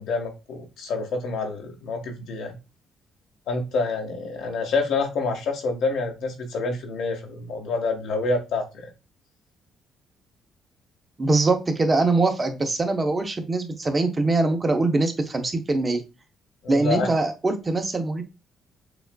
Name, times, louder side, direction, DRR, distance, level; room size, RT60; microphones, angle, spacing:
voice 1, 0.0-2.5 3.5-8.9 16.6-17.1, left 3 dB, 80° left, 3 dB, 1.5 m, -27 dB
voice 2, 11.2-16.0 16.7-18.2, right 3 dB, 20° right, 6 dB, 0.7 m, -23 dB
6.8 x 2.4 x 2.3 m, 0.27 s
cardioid pair, 140°, 0 cm